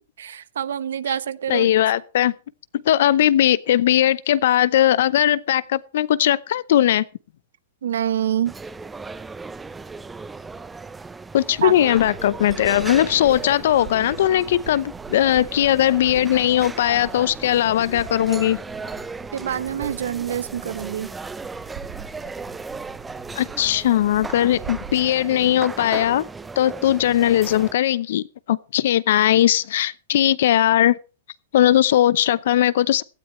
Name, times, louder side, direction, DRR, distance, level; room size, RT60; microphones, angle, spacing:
voice 1, 0.2-1.7 7.8-8.5 11.6-11.8 19.3-21.1, right 10 dB, 80° right, 17 dB, 0.8 m, -26 dB
voice 2, 1.5-2.3 2.9-7.0 11.3-18.6 23.3-26.2 26.6-30.9 31.5-33.0, left 12 dB, 70° left, 20 dB, 0.7 m, -19 dB
sound 1, 8.4-27.7, right 4 dB, 10° right, 0.6 m, -36 dB
sound 2, 11.9-25.1, right 8 dB, 40° right, 1.8 m, -42 dB
17.0 x 12.5 x 3.1 m, 0.34 s
hypercardioid pair, 140°, 0 cm